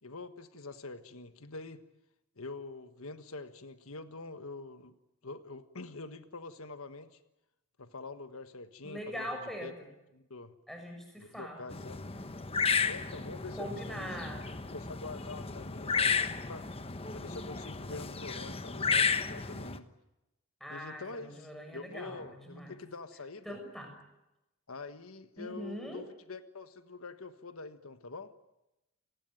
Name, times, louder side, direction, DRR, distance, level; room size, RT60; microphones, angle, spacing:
voice 1, 0.0-1.8 2.4-5.0 5.2-7.2 7.8-9.3 9.6-9.7 10.1-10.5 11.2-12.0 12.8-14.1 14.7-16.7 17.1-19.9 20.7-23.6 24.7-28.3, left 3 dB, 80° left, 10 dB, 1.4 m, -45 dB
voice 2, 8.8-9.9 10.7-11.6 13.5-14.5 20.6-22.7 23.4-23.9 25.4-26.0, equal, ahead, 3 dB, 6.8 m, -42 dB
sound 1, 11.7-19.8, left 5 dB, 25° left, 1.2 m, -33 dB
29.0 x 19.0 x 9.2 m, 0.94 s
head